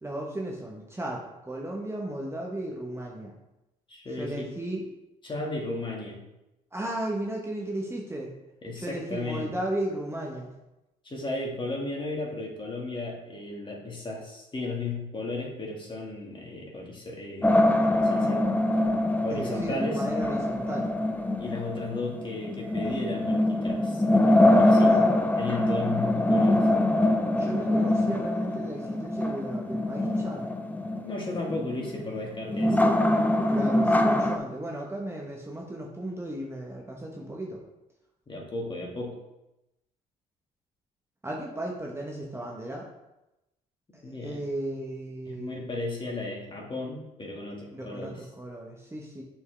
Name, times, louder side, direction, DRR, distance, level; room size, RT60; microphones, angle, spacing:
voice 1, 0.0-3.3 4.2-4.8 6.7-8.3 8.8-10.5 19.3-20.9 24.8-25.1 27.4-30.4 33.5-37.6 41.2-42.9 43.9-45.6 47.7-49.2, right 1 dB, 15° right, -1 dB, 1.1 m, -35 dB
voice 2, 3.9-4.5 5.2-6.2 8.6-9.5 11.0-18.4 19.2-20.0 21.4-24.0 24.6-24.9 25.4-26.7 31.0-32.9 38.3-39.2 44.0-44.4 45.3-48.3, left 2 dB, 25° left, -1 dB, 2.0 m, -35 dB
sound 1, 17.4-34.4, left 1 dB, 10° left, 0.5 m, -24 dB
6.7 x 4.6 x 3.3 m, 0.94 s
supercardioid pair, 65°, 18 cm